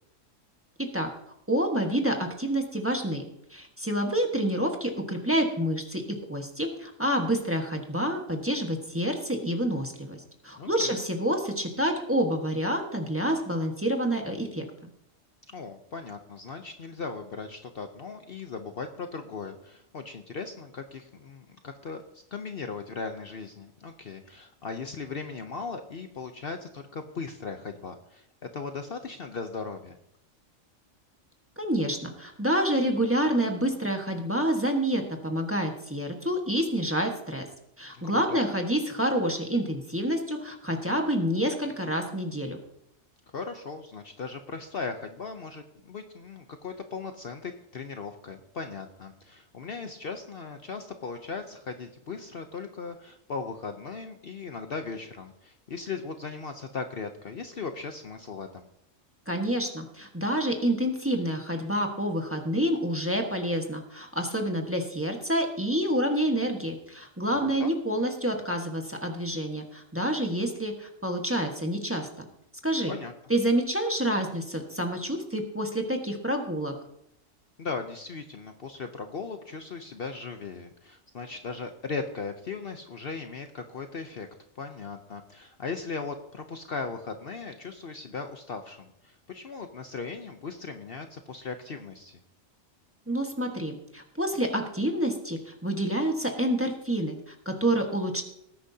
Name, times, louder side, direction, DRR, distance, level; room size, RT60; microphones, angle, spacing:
voice 1, 1.5-3.2 3.5-10.2 10.4-14.6 31.6-37.4 37.8-42.6 59.3-72.1 72.6-72.9 73.3-76.7 93.1-98.2, equal, 10° right, 2 dB, 1.3 m, -28 dB
voice 2, 10.6-11.0 15.5-28.2 28.5-30.0 37.9-38.4 43.3-58.7 67.4-67.7 72.9-73.1 77.6-84.3 84.6-92.2, left 4 dB, 50° left, 6 dB, 0.9 m, -38 dB
19.0 x 10.0 x 2.8 m, 0.76 s
omnidirectional pair, 1.3 m